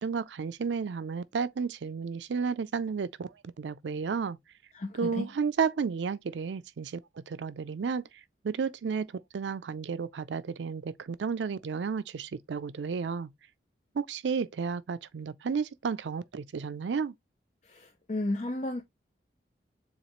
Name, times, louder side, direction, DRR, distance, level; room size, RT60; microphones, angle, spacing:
voice 1, 0.0-4.4 5.0-7.0 7.3-8.0 8.4-9.1 9.3-13.3 13.9-17.1, right 5 dB, 80° right, 0.4 m, -32 dB
voice 2, 4.7-5.3 17.6-18.8, left 2 dB, 40° left, 0.6 m, -33 dB
7.1 x 2.4 x 3.0 m
head